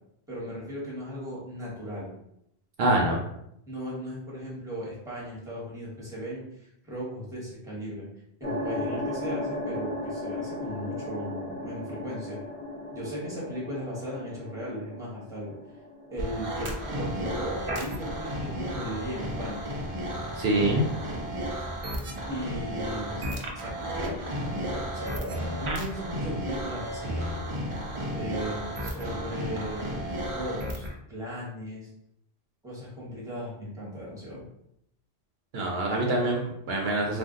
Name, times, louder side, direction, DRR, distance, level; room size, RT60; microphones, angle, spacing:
voice 1, 0.3-2.1 3.7-8.1 8.4-12.4 12.9-15.6 16.1-19.7 22.3-27.1 28.1-31.9 32.6-34.4, equal, 5° right, -6 dB, 1.0 m, -37 dB
voice 2, 2.8-3.2 20.4-20.8 21.4-21.5 35.5-37.2, right 1 dB, 70° right, -1 dB, 0.8 m, -25 dB
sound 1, 8.4-17.1, left 1 dB, 15° left, 0.7 m, -36 dB
sound 2, 16.2-30.9, equal, 45° right, 0.4 m, -33 dB
2.5 x 2.2 x 3.6 m, 0.77 s
omnidirectional pair, 1.1 m